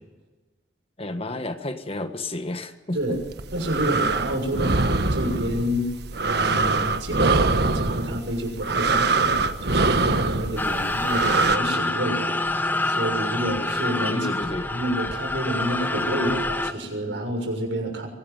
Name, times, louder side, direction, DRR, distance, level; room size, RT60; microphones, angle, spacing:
voice 1, 1.0-3.2 14.1-14.7, left 2 dB, 30° left, 9 dB, 1.5 m, -31 dB
sound 1, 3.2-11.6, right 3 dB, 60° right, 1.4 m, -23 dB
voice 2, 3.5-5.9 6.2-14.3 14.6-18.1, equal, 75° right, 3 dB, 6.9 m, -29 dB
sound 2, 10.6-16.7, left 2 dB, 10° left, 1.0 m, -26 dB
24.0 x 18.0 x 9.2 m, 1.2 s
head